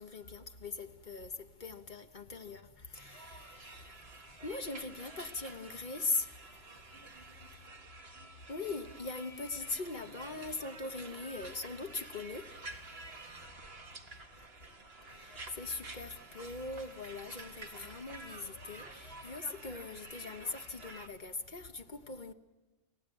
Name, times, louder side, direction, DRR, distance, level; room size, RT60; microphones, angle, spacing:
voice 1, 0.0-2.6 2.9-3.9 4.4-6.3 8.5-12.4 13.3-13.5 15.1-22.3, left 3 dB, 45° left, 1.3 m, -40 dB
sound 1, 2.9-21.1, right 2 dB, 55° right, 1.9 m, -50 dB
voice 2, 7.1-7.7 12.7-14.2, equal, 25° left, 5.7 m, -73 dB
30.0 x 14.5 x 9.1 m
omnidirectional pair, 1.2 m